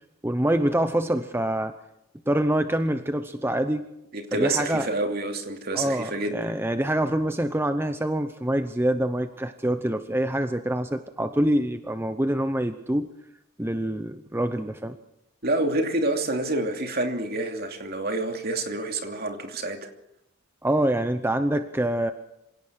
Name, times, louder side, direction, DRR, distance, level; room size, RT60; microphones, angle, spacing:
voice 1, 0.2-1.7 2.3-3.9 4.3-4.9 5.7-13.1 13.6-15.0 20.6-22.1, right 1 dB, 10° right, 9 dB, 0.8 m, -25 dB
voice 2, 4.1-6.5 15.4-19.9, right 2 dB, 50° right, 5 dB, 2.8 m, -28 dB
26.5 x 17.5 x 6.4 m, 0.82 s
head